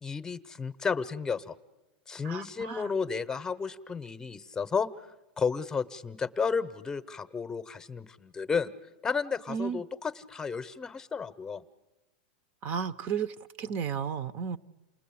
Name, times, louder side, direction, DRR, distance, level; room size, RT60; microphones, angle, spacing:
voice 1, 0.0-1.6 2.1-4.9 5.4-8.7 9.0-11.6, left 5 dB, 15° left, 12 dB, 0.9 m, -32 dB
voice 2, 2.2-2.9 9.5-9.8 12.6-14.6, right 7 dB, 40° right, 15 dB, 0.8 m, -33 dB
28.5 x 19.5 x 8.6 m, 1.0 s
supercardioid pair, 130°, 5 cm